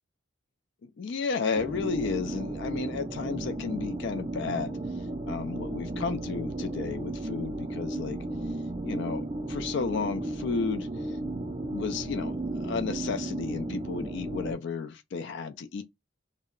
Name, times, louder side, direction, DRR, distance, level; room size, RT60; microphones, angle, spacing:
voice 1, 0.8-4.8 5.3-8.3 8.8-11.2 11.7-15.8, left 5 dB, 55° left, 0.3 m, -33 dB
sound 1, 1.5-14.5, right 2 dB, 20° right, 0.4 m, -34 dB
2.1 x 2.0 x 3.6 m
head